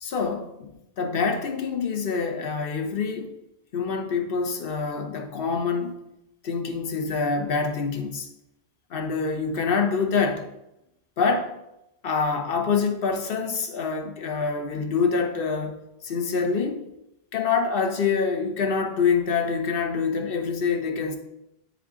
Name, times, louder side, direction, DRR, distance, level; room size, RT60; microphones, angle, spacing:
voice 1, 0.0-3.3 3.7-6.0 6.4-8.3 8.9-10.5 11.2-11.6 12.0-15.8 16.0-16.9 17.3-21.2, left 5 dB, 65° left, 5 dB, 1.0 m, -26 dB
9.0 x 3.6 x 3.6 m, 0.87 s
omnidirectional pair, 1.1 m